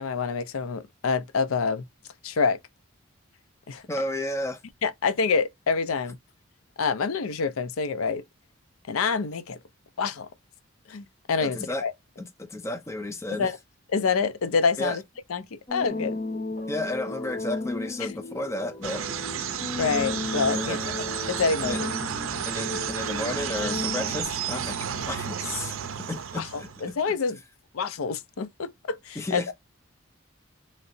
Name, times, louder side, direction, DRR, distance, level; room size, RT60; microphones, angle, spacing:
voice 1, 0.0-1.8 2.2-2.6 3.7-3.8 4.8-6.2 6.8-8.2 8.9-9.6 10.0-10.3 10.9-11.9 13.4-13.5 13.9-15.0 15.3-16.2 18.0-18.1 19.8-20.8 21.3-21.9 26.4-27.4 27.7-29.4, left 5 dB, 90° left, 0.5 m, -27 dB
voice 2, 3.9-4.6 11.4-11.8 12.2-13.5 14.8-15.0 16.7-19.0 20.5-20.8 21.6-21.8 22.5-26.9 29.2-29.5, left 1 dB, 15° left, 0.4 m, -33 dB
sound 1, 15.7-24.2, left 2 dB, 35° left, 0.9 m, -34 dB
sound 2, 18.8-26.9, right 8 dB, 75° right, 0.5 m, -32 dB
3.2 x 2.7 x 2.5 m
head